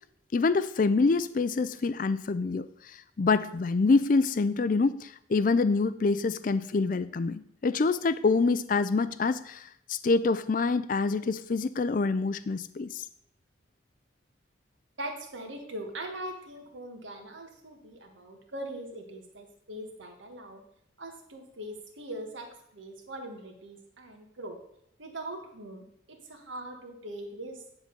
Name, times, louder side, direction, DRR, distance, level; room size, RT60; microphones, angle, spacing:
voice 1, 0.3-13.1, left 4 dB, 45° left, 14 dB, 0.4 m, -26 dB
voice 2, 15.0-20.6 21.0-22.5 22.7-24.6 25.0-27.7, right 1 dB, 85° right, 3 dB, 1.7 m, -41 dB
10.5 x 3.8 x 6.7 m, 0.75 s
head